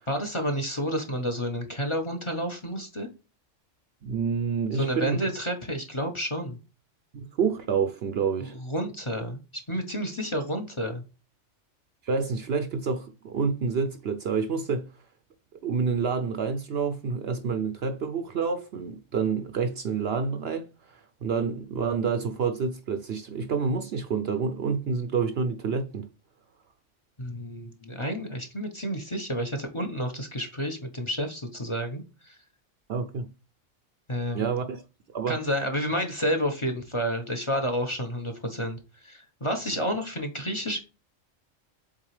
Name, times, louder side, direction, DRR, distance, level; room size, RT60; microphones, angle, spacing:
voice 1, 0.1-3.1 4.7-6.6 8.4-9.4 9.7-11.0 27.2-32.4 34.1-34.5 35.3-40.8, equal, 25° left, 1.0 m, -30 dB
voice 2, 4.0-5.2 7.4-8.6 12.0-14.9 15.6-26.1 32.9-33.3 34.3-34.8 35.1-35.4, right 5 dB, 60° right, 0.8 m, -28 dB
7.4 x 4.0 x 3.2 m
omnidirectional pair, 1.3 m